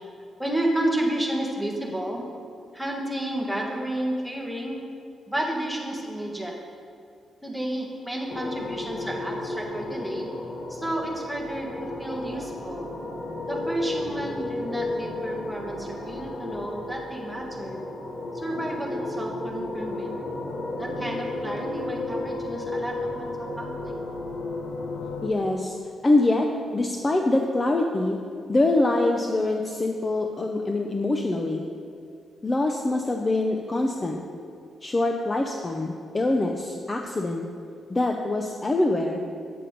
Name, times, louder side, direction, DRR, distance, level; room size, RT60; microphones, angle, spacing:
voice 1, 0.4-2.3 2.7-4.8 5.3-6.6 7.4-10.3 10.7-12.9 13.5-17.8 18.3-20.1 20.8-23.9, right 1 dB, ahead, -1 dB, 1.4 m, -31 dB
sound 1, 8.3-25.3, left 2 dB, 45° left, 1.3 m, -33 dB
voice 2, 25.2-25.8 26.0-28.2 28.5-31.6 32.4-34.2 34.8-37.5 37.9-39.2, left 2 dB, 20° left, 2 dB, 0.5 m, -24 dB
8.5 x 7.3 x 5.1 m, 2.4 s
cardioid pair, 125°, 0 cm